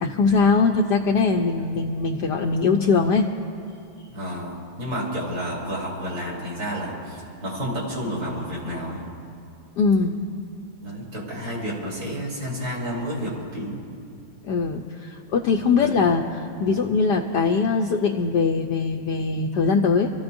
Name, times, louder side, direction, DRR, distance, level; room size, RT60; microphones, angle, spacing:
voice 1, 0.0-3.3 9.8-10.1 14.4-20.1, left 4 dB, 70° left, 2 dB, 1.0 m, -21 dB
voice 2, 1.5-1.8 4.1-9.0 10.8-13.8 15.7-16.0, equal, 60° right, -5 dB, 4.1 m, -31 dB
28.5 x 14.0 x 2.6 m, 2.4 s
omnidirectional pair, 2.4 m